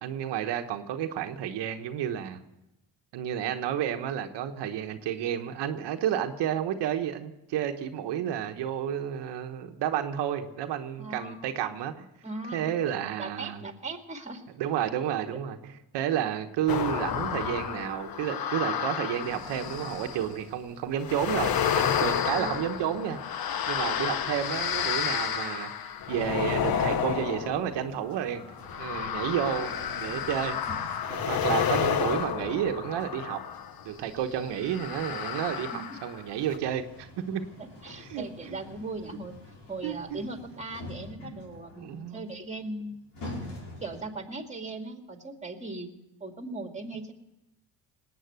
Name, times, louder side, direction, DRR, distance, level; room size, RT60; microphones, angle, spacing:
voice 1, 0.0-2.4 3.1-12.0 12.5-13.6 14.6-21.5 22.0-23.2 23.7-28.4 28.8-30.6 31.2-33.4 33.8-37.4 38.0-38.6 39.8-40.2 41.8-42.2, right 10 dB, 85° right, 5 dB, 1.1 m, -31 dB
voice 2, 11.0-11.5 12.2-12.7 13.2-14.5 15.3-15.4 22.3-22.9 30.7-30.8 31.1-31.2 35.7-36.0 37.6-39.3 39.7-43.0 43.8-45.9 46.2-47.1, right 2 dB, 15° right, 5 dB, 2.2 m, -39 dB
sound 1, 16.7-20.4 21.0-33.8 34.6-36.2 36.5-36.6, left 8 dB, 60° left, 1.0 m, -30 dB
sound 2, 27.8-44.3, left 2 dB, 75° left, 5.3 m, -47 dB
19.0 x 8.7 x 8.0 m, 0.94 s
cardioid pair, 85°, 41 cm